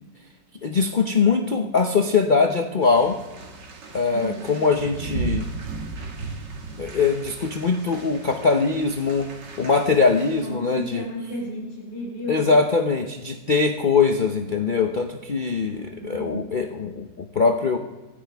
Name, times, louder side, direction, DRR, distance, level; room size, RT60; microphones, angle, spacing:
voice 1, 0.6-3.2 3.9-5.5 6.8-9.3 9.6-11.0 12.3-17.8, left 4 dB, 65° left, 4 dB, 0.4 m, -22 dB
sound 1, 2.8-10.5, right 4 dB, 75° right, 2.2 m, -36 dB
voice 2, 4.1-4.5 10.4-12.9 16.0-16.5, equal, 80° left, -2 dB, 4.0 m, -33 dB
25.5 x 10.0 x 3.4 m, 1.2 s
omnidirectional pair, 1.9 m